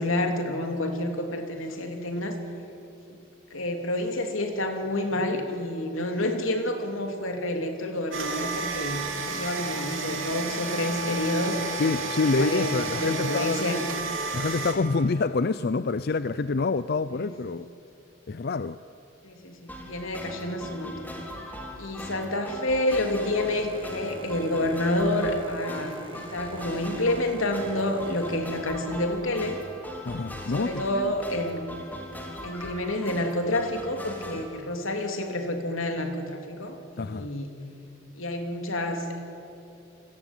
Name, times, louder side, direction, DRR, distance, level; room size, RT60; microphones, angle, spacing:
voice 1, 0.0-2.4 3.5-11.6 12.1-13.9 17.1-17.4 19.2-21.2 21.8-29.6 30.5-31.6 32.4-37.5 38.1-39.2, left 1 dB, 85° left, 5 dB, 3.2 m, -29 dB
sound 1, 8.1-14.7, right 3 dB, 80° right, 3.1 m, -32 dB
voice 2, 11.7-13.6 14.3-17.7 18.3-18.8 30.1-31.1 34.3-34.4 37.0-37.3, left 3 dB, 50° left, 13 dB, 0.5 m, -27 dB
sound 2, 19.7-34.4, equal, 10° left, 3.4 m, -40 dB
Boat Water vehicle, 23.2-29.6, right 1 dB, 25° right, 2.4 m, -45 dB
29.0 x 20.5 x 9.0 m, 2.8 s
head